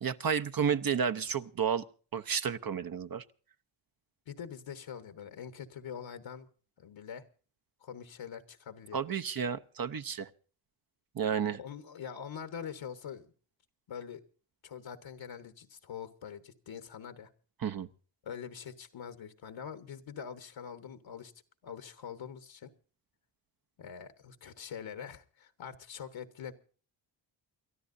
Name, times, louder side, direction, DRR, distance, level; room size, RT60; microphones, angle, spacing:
voice 1, 0.0-1.8 2.1-3.2 8.9-10.3 11.1-11.6 17.6-17.9, right 7 dB, 45° right, 0.8 m, -31 dB
voice 2, 4.3-6.5 6.8-7.2 7.8-9.0 11.6-13.3 13.9-14.2 14.6-17.3 18.2-21.3 21.6-22.7 23.8-26.5, left 7 dB, 70° left, 1.3 m, -44 dB
29.0 x 13.0 x 2.6 m
cardioid pair, 65°, 47 cm